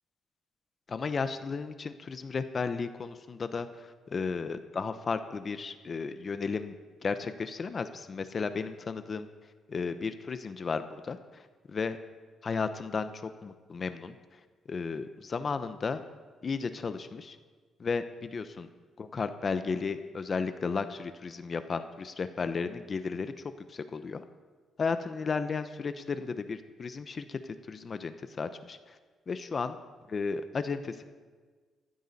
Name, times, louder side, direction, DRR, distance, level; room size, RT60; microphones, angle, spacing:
voice 1, 0.9-6.7 7.0-9.3 9.7-12.0 12.4-14.1 14.7-16.0 16.4-17.4 17.8-18.7 19.0-23.3 23.7-24.2 24.8-29.0 29.3-29.8 30.1-31.0, left 5 dB, 40° left, 10 dB, 0.7 m, -34 dB
15.0 x 13.5 x 4.1 m, 1.4 s
cardioid pair, 90°, 0 cm